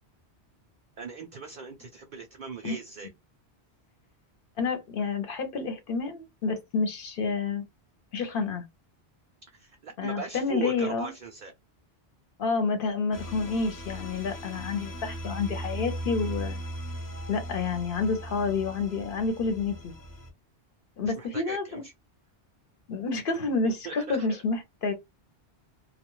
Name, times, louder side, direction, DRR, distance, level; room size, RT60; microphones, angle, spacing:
voice 1, 1.0-3.1 9.5-11.5 21.1-21.9 23.6-24.4, right 4 dB, 55° right, 0.6 m, -39 dB
voice 2, 4.6-7.6 8.1-8.6 10.0-11.1 12.4-16.6 17.3-19.9 21.0-21.8 22.9-24.9, left 4 dB, 55° left, 0.9 m, -29 dB
sound 1, 13.1-20.3, right 1 dB, 25° left, 0.5 m, -38 dB
2.3 x 2.2 x 3.0 m
omnidirectional pair, 1.1 m